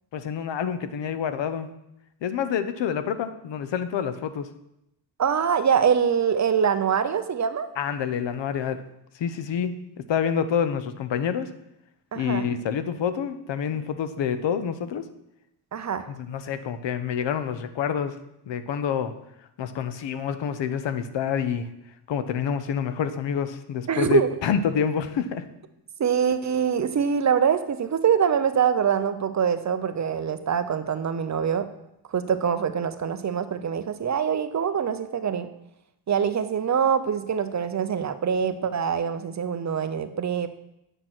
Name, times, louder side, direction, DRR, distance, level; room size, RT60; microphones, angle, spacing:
voice 1, 0.1-1.7 2.2-4.5 7.8-8.8 9.1-11.5 12.1-15.1 16.1-18.2 18.5-19.1 19.6-21.7 22.1-25.5, left 7 dB, 85° left, 11 dB, 0.9 m, -27 dB
voice 2, 5.2-7.7 12.1-12.5 15.7-16.1 23.9-24.4 26.0-31.7 32.1-35.5 36.1-40.5, right 7 dB, 40° right, 10 dB, 0.6 m, -24 dB
8.9 x 6.5 x 6.0 m, 0.83 s
wide cardioid pair, 135°, 43 cm